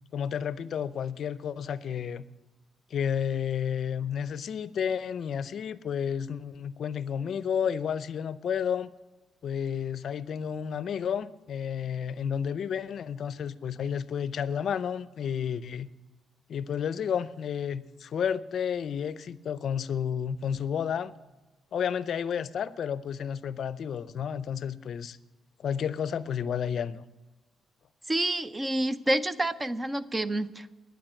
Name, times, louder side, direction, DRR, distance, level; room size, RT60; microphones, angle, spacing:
voice 1, 0.1-2.2 2.9-8.9 9.4-15.9 16.5-21.1 21.7-25.2 25.6-27.0, left 8 dB, 60° left, 0.6 m, -31 dB
voice 2, 28.1-30.8, right 1 dB, 20° right, 0.7 m, -28 dB
12.0 x 9.1 x 8.8 m
cardioid pair, 90°, 0 cm